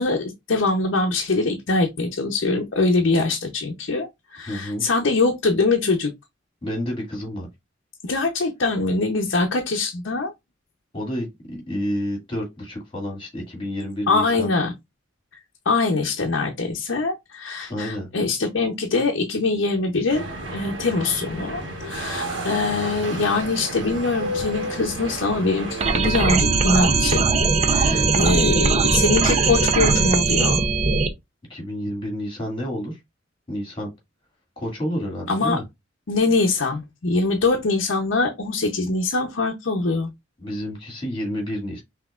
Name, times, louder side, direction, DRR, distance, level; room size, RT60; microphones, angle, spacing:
voice 1, 0.0-6.1 8.0-10.3 14.1-14.7 15.7-27.3 27.6-30.6 35.3-35.6 36.1-40.1, left 3 dB, 70° left, 0.7 m, -23 dB
voice 2, 4.5-4.8 6.6-7.5 10.9-14.5 17.7-18.1 27.8-28.7 31.5-33.0 33.5-33.9 34.6-35.6 40.4-41.8, equal, 25° left, 2.1 m, -30 dB
sound 1, 20.1-26.0, right 1 dB, 70° right, 1.4 m, -31 dB
sound 2, 25.8-31.1, right 4 dB, 35° right, 0.6 m, -19 dB
5.8 x 2.9 x 2.4 m
head